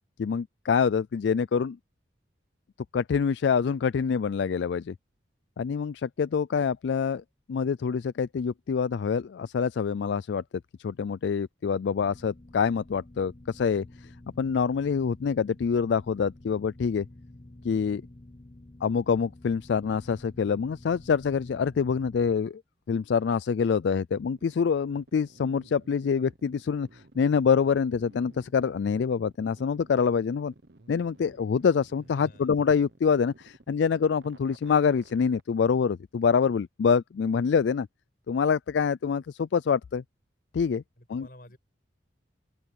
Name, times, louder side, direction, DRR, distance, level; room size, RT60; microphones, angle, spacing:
voice 1, 0.2-1.8 2.9-4.9 5.6-7.2 7.5-10.4 10.8-14.1 14.4-17.1 17.6-18.0 18.8-22.6 22.9-30.5 30.9-37.9 38.3-40.0 40.5-40.8 41.1-41.3, left 6 dB, 70° left, 0.3 m, -26 dB
sound 1, 12.0-22.4, left 1 dB, 30° left, 0.7 m, -50 dB
sound 2, 24.4-35.4, right 2 dB, 60° right, 1.2 m, -55 dB
voice 2, 32.0-32.5 41.0-41.6, left 1 dB, 50° left, 6.5 m, -51 dB
open air
head